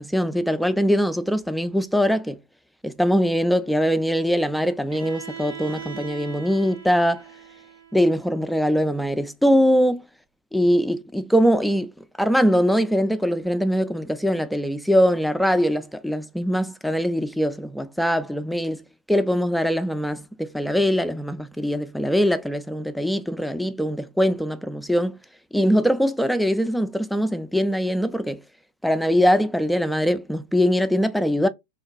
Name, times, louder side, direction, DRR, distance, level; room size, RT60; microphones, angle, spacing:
voice 1, 0.0-2.4 2.8-7.2 7.9-10.1 10.5-11.9 12.2-18.8 19.1-25.2 25.5-28.4 28.8-31.5, equal, ahead, 0.3 m, -22 dB
Bowed string instrument, 4.9-8.8, right 7 dB, 60° right, 0.9 m, -40 dB
3.2 x 2.2 x 2.4 m
figure-of-eight pair, 90°, 0 cm